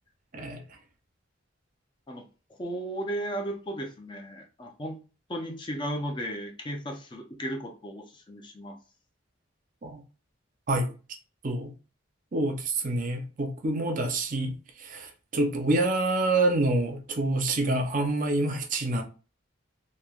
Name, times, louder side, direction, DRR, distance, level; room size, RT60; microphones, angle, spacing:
voice 1, 2.6-5.0 5.3-8.8, right 1 dB, 25° left, 0.5 m, -35 dB
voice 2, 12.3-19.0, right 2 dB, 40° right, 0.5 m, -27 dB
3.1 x 2.1 x 2.3 m
head